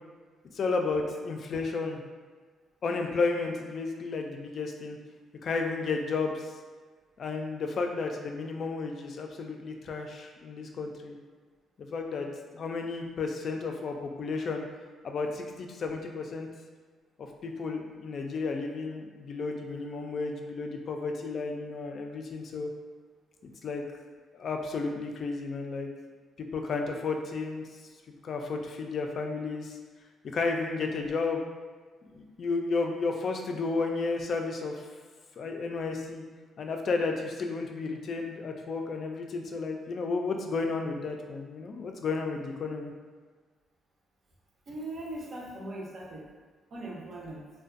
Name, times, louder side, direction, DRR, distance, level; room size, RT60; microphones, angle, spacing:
voice 1, 0.5-2.0 2.8-5.0 5.4-6.5 7.2-11.2 11.8-12.3 12.5-14.7 15.0-16.5 17.4-22.7 23.6-23.8 24.3-25.9 26.4-27.7 28.2-29.8 30.3-31.4 32.0-34.9 35.4-36.2 36.6-42.9, left 4 dB, 55° left, 3 dB, 0.3 m, -32 dB
voice 2, 44.7-46.3 46.7-47.4, right 1 dB, 50° right, -2 dB, 0.5 m, -39 dB
2.5 x 2.2 x 2.5 m, 1.5 s
cardioid pair, 90°, 0 cm